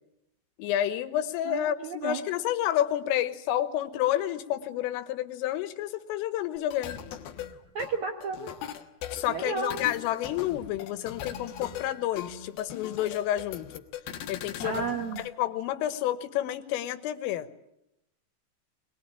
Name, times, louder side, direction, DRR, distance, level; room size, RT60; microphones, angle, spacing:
voice 1, 0.6-7.0 9.1-13.7 14.3-14.9 15.2-17.5, left 12 dB, 90° left, 12 dB, 3.8 m, -30 dB
voice 2, 1.5-2.2 7.7-8.5 9.3-9.8 14.6-15.2, right 5 dB, 65° right, 4 dB, 1.9 m, -33 dB
sound 1, 6.6-15.3, left 10 dB, 65° left, 2.6 m, -40 dB
22.5 x 20.5 x 9.8 m, 0.82 s
omnidirectional pair, 5.7 m